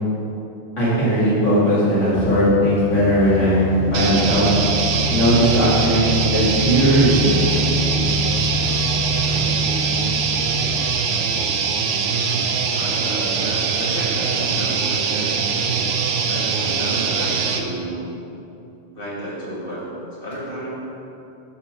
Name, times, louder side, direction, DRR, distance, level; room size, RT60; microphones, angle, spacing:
voice 1, 0.8-4.5 5.1-7.6 9.3-9.4, equal, 85° left, -10 dB, 2.4 m, -18 dB
sound 1, 2.2-10.9, left 2 dB, 55° right, 0.9 m, -26 dB
sound 2, 3.9-17.6, right 5 dB, 80° right, 1.0 m, -22 dB
voice 2, 12.7-15.3 16.3-18.0 18.9-19.8 20.2-20.7, equal, 45° left, -8 dB, 2.3 m, -31 dB
8.6 x 4.0 x 6.2 m, 2.9 s
omnidirectional pair, 1.2 m